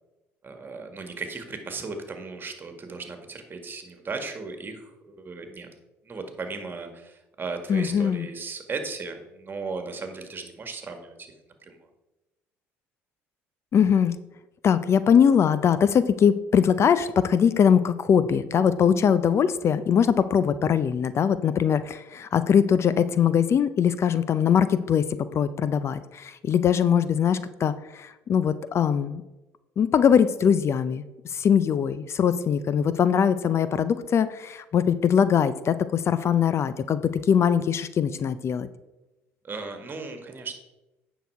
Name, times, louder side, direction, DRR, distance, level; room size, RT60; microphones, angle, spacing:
voice 1, 0.4-5.7 6.1-11.3 11.6-11.8 39.4-40.5, right 4 dB, 35° right, 6 dB, 1.8 m, -36 dB
voice 2, 7.7-8.3 13.7-14.2 14.6-29.2 29.8-38.7, left 7 dB, 45° left, 15 dB, 0.5 m, -22 dB
9.4 x 6.0 x 4.6 m, 1.0 s
supercardioid pair, 75°, 6 cm